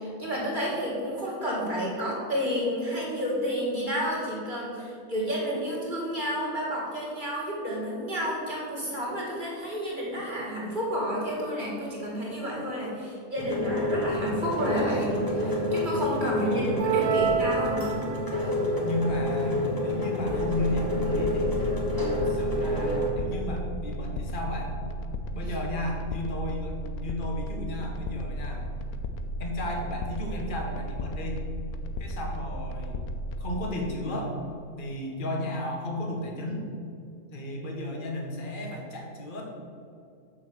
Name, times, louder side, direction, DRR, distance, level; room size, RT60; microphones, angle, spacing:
voice 1, 0.0-17.9 18.4-18.5, equal, 35° right, -4 dB, 2.1 m, -30 dB
sound 1, 13.4-23.1, left 1 dB, 15° left, 1.3 m, -28 dB
voice 2, 16.3-17.0 18.5-21.7 22.2-24.8 25.3-28.6 29.4-31.4 32.0-33.0 33.4-34.4 34.8-36.6 37.3-39.4, left 1 dB, 35° left, 0 dB, 1.4 m, -33 dB
sound 2, 16.8-18.5, right 7 dB, 80° right, 1.2 m, -27 dB
sound 3, 20.3-33.7, equal, 90° left, 1.1 m, -35 dB
6.3 x 5.6 x 7.1 m, 2.4 s
omnidirectional pair, 1.5 m